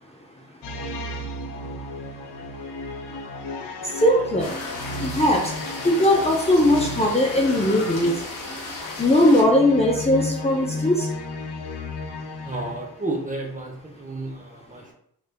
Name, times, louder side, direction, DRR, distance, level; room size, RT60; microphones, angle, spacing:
sound 1, 0.6-13.2, left 2 dB, 85° left, 0.6 m, -34 dB
voice 1, 4.0-4.5 5.0-5.4 5.8-8.1 9.0-11.1, left 1 dB, 15° left, -1 dB, 0.6 m, -19 dB
sound 2, 4.4-9.4, left 2 dB, 55° left, 1.0 m, -35 dB
voice 2, 12.4-14.9, right 2 dB, 20° right, 0 dB, 0.8 m, -32 dB
3.2 x 3.2 x 2.2 m, 0.70 s
cardioid pair, 40°, 40 cm